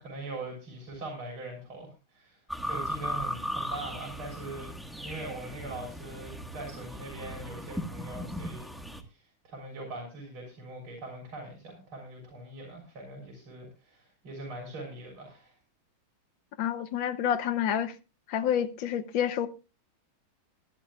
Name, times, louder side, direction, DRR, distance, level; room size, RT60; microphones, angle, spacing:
voice 1, 0.0-4.7 5.0-8.7 9.0-15.6, right 2 dB, 80° right, 4.6 m, -42 dB
sound 1, 2.5-9.0, equal, ahead, 0.9 m, -37 dB
voice 2, 16.6-17.9 18.3-19.5, left 9 dB, 70° left, 1.5 m, -28 dB
22.0 x 10.5 x 2.3 m
omnidirectional pair, 2.3 m